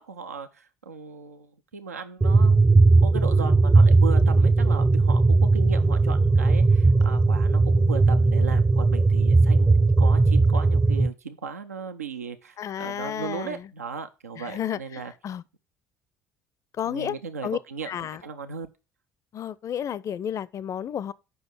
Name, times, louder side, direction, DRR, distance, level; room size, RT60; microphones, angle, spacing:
voice 1, 0.0-2.6 3.0-15.1 16.8-18.7, right 5 dB, 85° right, 0.4 m, -37 dB
sound 1, 2.2-11.1, right 3 dB, 15° right, 0.4 m, -18 dB
voice 2, 12.6-13.7 14.4-15.4 16.8-17.2 17.4-17.6 17.9-18.2 19.3-21.1, left 9 dB, 40° left, 0.5 m, -32 dB
7.8 x 5.5 x 5.7 m
figure-of-eight pair, 55°, 8 cm